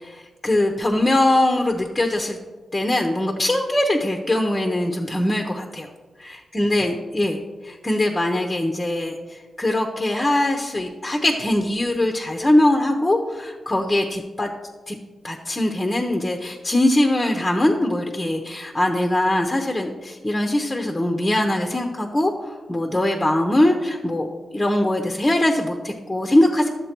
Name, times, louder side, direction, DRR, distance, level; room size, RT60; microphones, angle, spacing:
voice 1, 0.0-2.4 2.7-5.9 6.2-14.5 14.9-15.0 15.2-26.7, left 1 dB, 15° left, 2 dB, 0.8 m, -22 dB
12.0 x 7.4 x 4.5 m, 1.3 s
wide cardioid pair, 130°, 0 cm